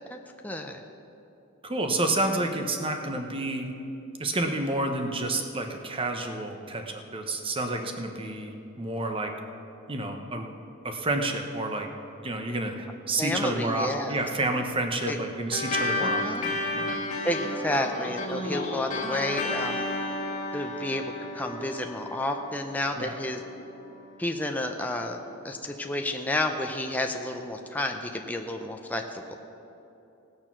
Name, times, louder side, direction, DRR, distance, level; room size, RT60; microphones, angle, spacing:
voice 1, 0.4-0.8 13.2-14.2 15.1-15.2 16.0-16.5 17.2-19.9 20.5-21.0 21.3-23.4 24.2-25.2 25.4-29.4, left 1 dB, 10° left, 3 dB, 0.6 m, -31 dB
voice 2, 1.6-3.7 4.2-9.3 9.9-10.5 10.8-11.9 12.2-17.0 22.9-23.2, right 2 dB, 25° right, 4 dB, 1.0 m, -29 dB
sound 1, 15.5-24.3, left 2 dB, 35° left, 1.7 m, -32 dB
18.0 x 6.7 x 6.0 m, 2.9 s
head